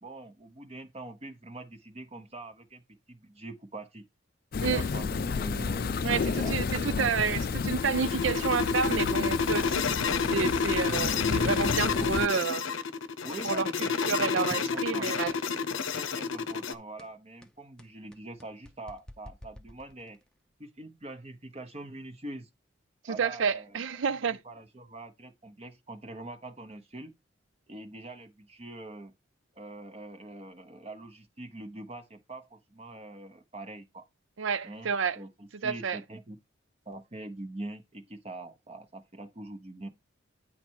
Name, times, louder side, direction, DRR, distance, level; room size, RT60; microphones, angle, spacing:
voice 1, 0.0-2.8 3.1-4.0 4.6-7.6 9.5-9.8 13.2-15.1 15.7-20.2 20.6-22.5 23.1-23.8 24.1-27.1 27.7-29.1 29.6-34.1 34.6-36.4 36.8-39.9, right 2 dB, 30° right, 0.8 m, -44 dB
sound 1, 4.5-12.3, left 5 dB, 50° left, 0.4 m, -31 dB
voice 2, 6.0-12.7 13.4-15.3 23.0-24.4 34.4-35.2 35.6-36.0, right 6 dB, 75° right, 0.5 m, -30 dB
sound 2, 7.4-16.7, left 5 dB, 80° left, 0.7 m, -29 dB
sound 3, 14.5-14.8 15.3-15.6 15.9-16.1 16.5-16.7 17.0-20.3, equal, 5° left, 0.6 m, -49 dB
9.7 x 4.3 x 4.6 m
head